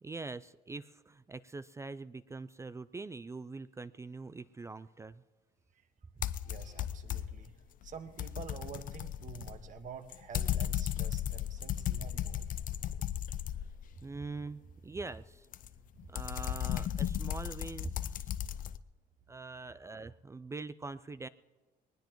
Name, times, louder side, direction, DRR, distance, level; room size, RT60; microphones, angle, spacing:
voice 1, 0.0-5.2 6.2-6.3 14.0-15.5 16.1-18.3 19.3-21.3, right 3 dB, 15° right, 15 dB, 0.4 m, -43 dB
sound 1, 6.2-7.5 7.8-14.0 15.5-18.8, left 11 dB, 55° left, 0.6 m, -35 dB
voice 2, 6.4-7.5 7.8-12.5, right 6 dB, 50° right, 7 dB, 1.5 m, -48 dB
21.0 x 19.5 x 3.1 m, 1.3 s
cardioid pair, 110°, 17 cm